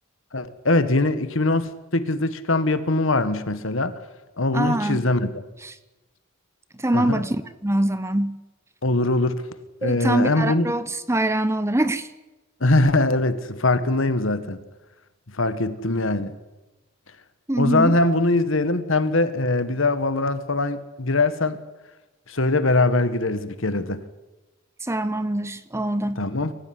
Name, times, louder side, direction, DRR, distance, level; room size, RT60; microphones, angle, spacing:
voice 1, 0.3-4.0 4.4-5.4 6.9-7.3 8.8-9.5 9.8-10.7 12.6-14.6 15.3-16.3 17.6-21.6 22.3-24.0 26.2-26.5, left 2 dB, 65° left, 12 dB, 1.7 m, -22 dB
voice 2, 4.5-5.0 5.6-5.7 6.8-7.4 7.6-8.4 9.8-12.1 17.5-18.0 24.8-26.2, right 1 dB, 15° right, 13 dB, 0.9 m, -24 dB
25.5 x 15.0 x 9.7 m, 1.1 s
head